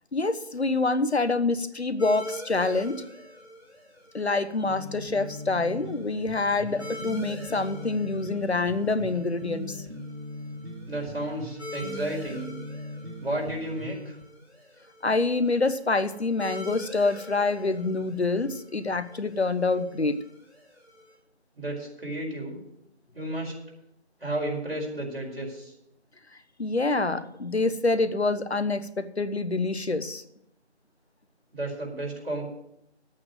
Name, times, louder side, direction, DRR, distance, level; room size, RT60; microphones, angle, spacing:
voice 1, 0.1-3.0 4.1-9.8 15.0-20.2 26.6-30.2, left 3 dB, 70° left, 12 dB, 1.1 m, -26 dB
sound 1, 2.0-21.1, left 1 dB, ahead, 5.2 m, -45 dB
sound 2, 4.6-14.2, left 1 dB, 80° right, 2.0 m, -40 dB
voice 2, 10.9-12.5 13.2-14.2 21.6-22.6 23.1-23.5 24.2-25.7 31.5-32.4, right 1 dB, 60° right, -2 dB, 4.9 m, -32 dB
9.8 x 8.7 x 7.8 m, 0.78 s
figure-of-eight pair, 175°, 34 cm